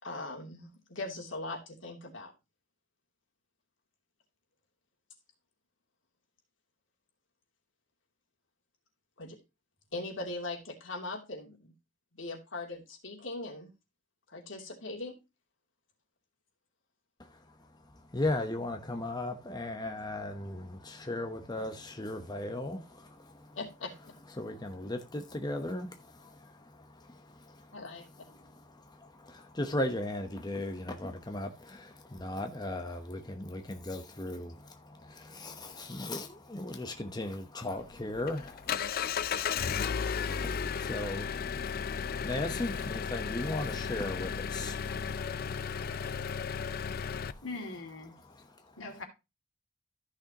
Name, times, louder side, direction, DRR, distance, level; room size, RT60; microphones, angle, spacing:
voice 1, 0.0-2.3 9.2-9.4 9.9-11.7 12.1-13.7 14.3-15.2 23.5-24.1 27.7-28.0, left 2 dB, 70° left, 3.0 m, -40 dB
voice 2, 17.2-23.6 24.3-47.4 48.2-48.7, left 1 dB, 20° left, 1.0 m, -38 dB
Engine, 37.8-47.3, left 6 dB, 50° left, 0.5 m, -34 dB
voice 3, 47.4-48.1 48.8-49.0, left 3 dB, 85° left, 2.6 m, -41 dB
14.0 x 6.4 x 2.9 m
head